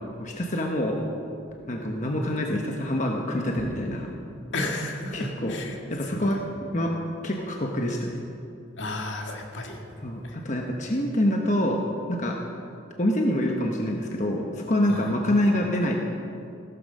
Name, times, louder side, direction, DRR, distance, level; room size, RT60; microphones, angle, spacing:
voice 1, 0.2-1.1 1.7-4.1 5.1-5.6 5.9-6.4 6.7-7.0 7.2-8.2 10.0-11.8 12.1-12.4 13.0-16.0, left 1 dB, 40° left, 1 dB, 1.1 m, -26 dB
voice 2, 4.5-5.8 6.1-6.4 8.8-9.8 10.2-10.4 14.9-15.1, left 2 dB, 70° left, 2 dB, 2.0 m, -33 dB
16.5 x 13.0 x 5.4 m, 2.6 s
head